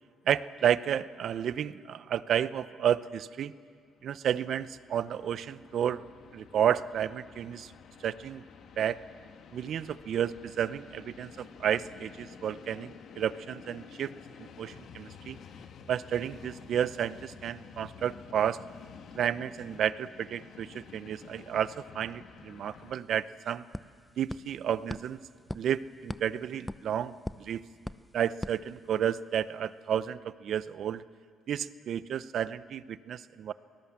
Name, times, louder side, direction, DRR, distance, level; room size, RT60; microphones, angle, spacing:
voice 1, 0.3-3.5 4.0-6.0 6.3-7.7 8.0-8.4 8.8-9.0 9.5-14.1 14.4-15.4 15.9-18.6 19.2-23.6 24.2-25.2 25.5-27.6 28.1-31.0 31.5-33.5, right 9 dB, 65° right, 16 dB, 0.7 m, -31 dB
Train, 4.0-22.9, left 6 dB, 70° left, 1.5 m, -51 dB
sound 1, 22.6-22.7 22.9-29.4, left 1 dB, 10° left, 0.7 m, -43 dB
28.0 x 19.0 x 7.5 m, 2.1 s
supercardioid pair, 70°, 0 cm